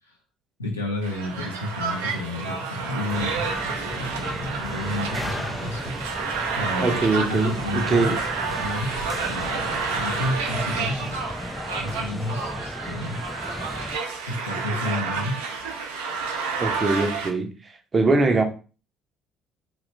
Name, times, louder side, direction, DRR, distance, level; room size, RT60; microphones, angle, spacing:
voice 1, 0.6-6.0 6.5-8.1 8.6-8.9 9.3-11.2 11.8-13.2 14.3-15.4, left 1 dB, 85° left, 0.6 m, -31 dB
sound 1, 1.0-17.3, right 5 dB, 70° right, 0.5 m, -30 dB
sound 2, 3.1-14.0, left 1 dB, 10° left, 0.3 m, -36 dB
voice 2, 6.8-8.2 16.6-18.4, right 3 dB, 30° right, 0.6 m, -22 dB
2.8 x 2.4 x 3.2 m
figure-of-eight pair, 50°, 0 cm